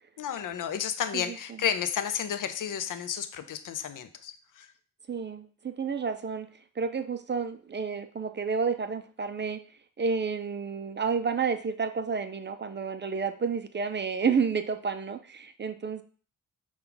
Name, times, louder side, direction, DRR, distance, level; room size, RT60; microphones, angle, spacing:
voice 1, 0.2-4.7, left 8 dB, 65° left, 10 dB, 0.6 m, -32 dB
voice 2, 5.1-6.5 6.8-9.6 10.0-16.0, right 5 dB, 35° right, 9 dB, 0.5 m, -30 dB
5.7 x 2.3 x 3.8 m, 0.41 s
cardioid pair, 65°, 34 cm